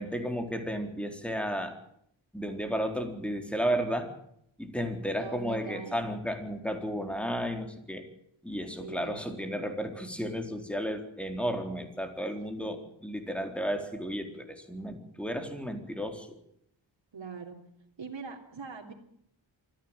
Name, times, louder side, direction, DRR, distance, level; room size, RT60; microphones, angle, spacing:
voice 1, 0.0-1.8 2.3-4.1 4.6-8.0 8.4-16.4, equal, ahead, 5 dB, 4.2 m, -33 dB
voice 2, 5.2-6.0 8.8-9.2 12.5-12.8 17.1-17.6 18.0-18.9, right 5 dB, 70° right, -3 dB, 3.3 m, -41 dB
24.5 x 15.0 x 9.1 m, 0.71 s
wide cardioid pair, 80°, 46 cm